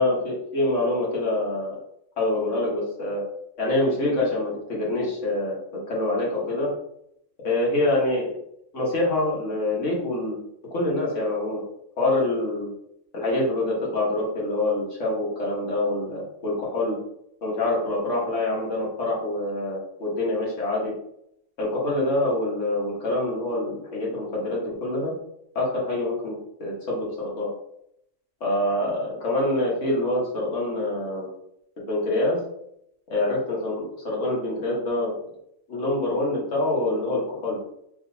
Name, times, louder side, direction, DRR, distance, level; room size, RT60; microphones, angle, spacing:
voice 1, 0.0-1.8 2.2-3.2 3.6-5.5 5.9-6.7 7.4-8.3 8.7-10.4 10.7-11.6 12.0-12.7 13.1-17.0 17.4-20.9 21.6-25.1 25.5-27.5 28.4-31.3 31.9-32.4 33.1-35.1 35.7-37.6, left 2 dB, 65° left, -5 dB, 1.7 m, -25 dB
4.9 x 3.0 x 2.7 m, 0.76 s
omnidirectional pair, 1.4 m